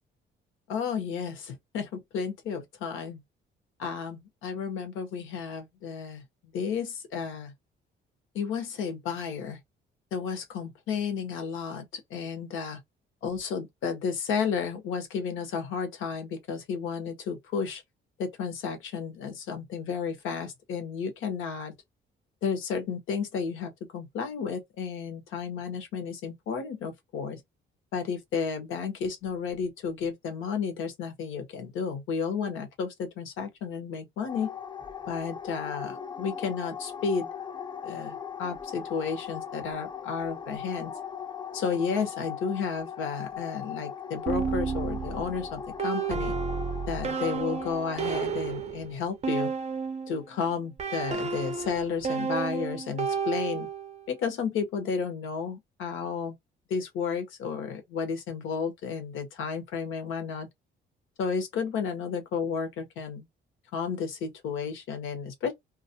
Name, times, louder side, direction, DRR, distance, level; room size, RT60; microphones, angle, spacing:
voice 1, 0.7-3.2 3.8-6.2 6.5-7.5 8.3-9.6 10.1-12.8 13.2-17.8 18.2-21.7 22.4-27.4 27.9-34.5 35.1-37.3 37.8-40.9 41.5-46.4 46.9-49.5 50.1-53.7 54.1-56.3 56.7-60.5 61.2-63.3 63.7-65.5, left 6 dB, 85° left, 0.9 m, -32 dB
sound 1, 34.3-48.2, left 7 dB, 25° left, 0.4 m, -39 dB
sound 2, 44.3-50.2 50.8-54.0, right 5 dB, 35° right, 0.5 m, -31 dB
2.4 x 2.0 x 2.7 m
cardioid pair, 90°, 20 cm